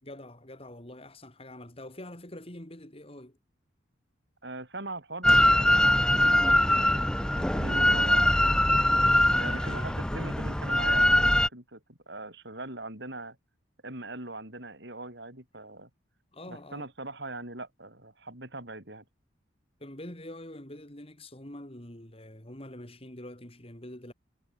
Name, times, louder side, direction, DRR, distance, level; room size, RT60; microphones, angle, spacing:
voice 1, 0.0-3.4 9.3-10.3 16.3-16.9 19.8-24.1, left 1 dB, 30° left, 3.1 m, -45 dB
voice 2, 4.4-8.5 9.4-13.4 13.8-15.9 16.5-19.0, right 2 dB, 60° right, 7.2 m, -41 dB
Drill, 5.2-11.5, left 1 dB, 5° left, 0.5 m, -22 dB
head